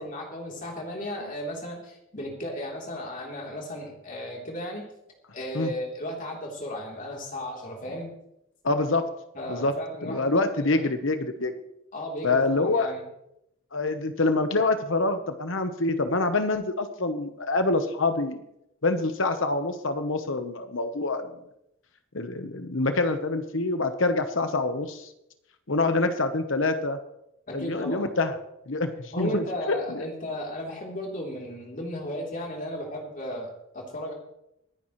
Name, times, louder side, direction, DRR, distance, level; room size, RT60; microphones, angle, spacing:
voice 1, 0.0-4.8 5.3-8.1 9.3-10.8 11.9-13.0 27.5-28.0 29.1-34.1, equal, 40° left, -1 dB, 3.5 m, -35 dB
voice 2, 8.6-9.1 9.5-9.8 10.0-11.5 12.2-12.9 13.7-18.4 18.8-21.3 22.1-25.1 25.7-27.0 27.5-28.4 28.7-30.0, left 2 dB, 60° left, 8 dB, 1.1 m, -26 dB
24.5 x 10.0 x 3.2 m, 0.82 s
head